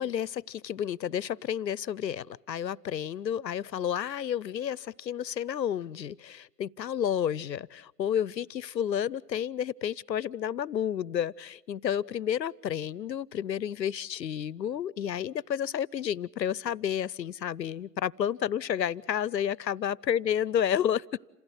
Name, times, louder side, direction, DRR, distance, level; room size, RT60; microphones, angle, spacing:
voice 1, 0.0-21.0, left 9 dB, 90° left, 25 dB, 0.7 m, -31 dB
27.5 x 16.0 x 8.1 m, 0.98 s
hypercardioid pair, 150°, 49 cm